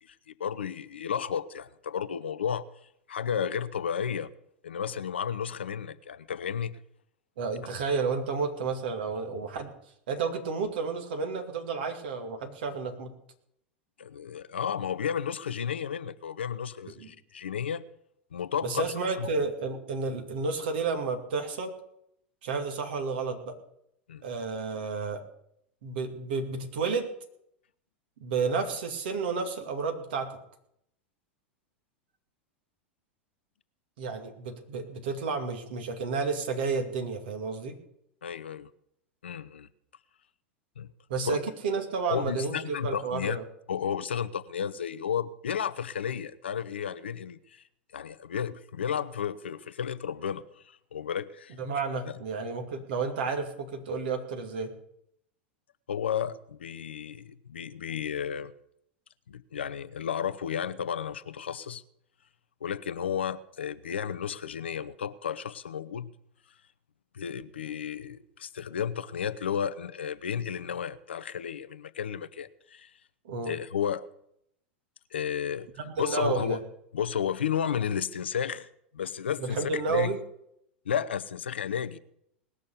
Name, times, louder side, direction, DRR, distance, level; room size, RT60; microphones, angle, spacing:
voice 1, 0.0-2.7 3.1-4.3 4.6-6.8 14.0-17.8 18.3-19.3 24.1-24.2 38.2-38.7 39.2-39.7 40.8-40.9 41.3-41.4 42.1-43.4 43.7-47.6 47.9-51.5 55.9-58.5 59.3-61.8 62.6-66.1 67.1-72.9 73.4-74.1 75.1-75.7 76.0-76.6 76.9-78.7 78.9-80.1 80.9-82.0, left 8 dB, 70° left, 0.7 m, -33 dB
voice 2, 7.4-9.7 10.1-13.1 17.0-17.1 18.6-21.7 22.4-23.5 24.2-25.2 25.8-27.1 28.2-30.3 34.0-37.8 41.1-43.4 51.6-54.7 73.3-73.5 75.8-76.6 79.4-80.2, right 4 dB, 60° right, 2.3 m, -31 dB
19.5 x 6.5 x 8.4 m
figure-of-eight pair, 85°, 6 cm